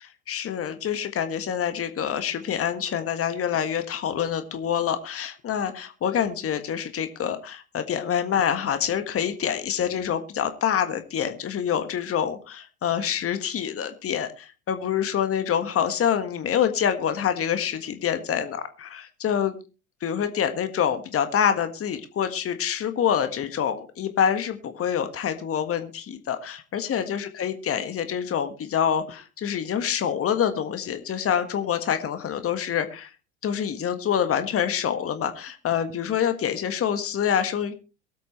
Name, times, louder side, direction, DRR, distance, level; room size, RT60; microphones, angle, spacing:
voice 1, 0.3-19.6 20.0-33.1 33.4-37.7, left 8 dB, 30° left, 9 dB, 1.7 m, -26 dB
22.5 x 8.4 x 3.2 m, 0.33 s
figure-of-eight pair, 75°, 43 cm